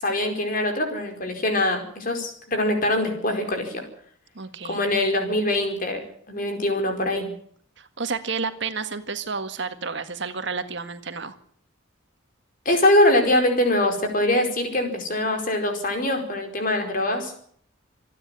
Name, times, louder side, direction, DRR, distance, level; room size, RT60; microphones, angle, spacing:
voice 1, 0.0-3.8 4.6-6.0 6.3-7.3 12.6-17.3, left 1 dB, 45° left, 4 dB, 4.8 m, -23 dB
voice 2, 4.4-4.8 7.8-11.4, right 4 dB, 60° right, 8 dB, 1.8 m, -31 dB
27.0 x 10.0 x 9.9 m, 0.63 s
head